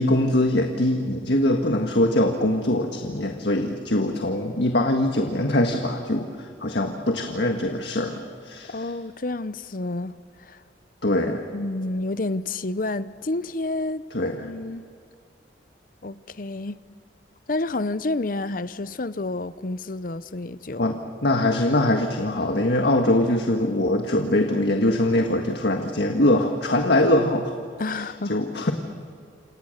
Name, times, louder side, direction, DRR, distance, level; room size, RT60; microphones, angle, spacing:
voice 1, 0.0-8.8 11.0-11.4 14.1-14.4 20.8-21.0 21.2-27.5 27.9-28.0 28.3-28.7, left 1 dB, 65° left, 1.6 m, -22 dB
voice 2, 8.7-10.1 10.4-10.6 11.5-14.0 14.4-14.8 16.0-16.8 17.5-20.8 27.8-28.4, left 2 dB, 45° left, 0.7 m, -29 dB
28.0 x 27.0 x 6.6 m
head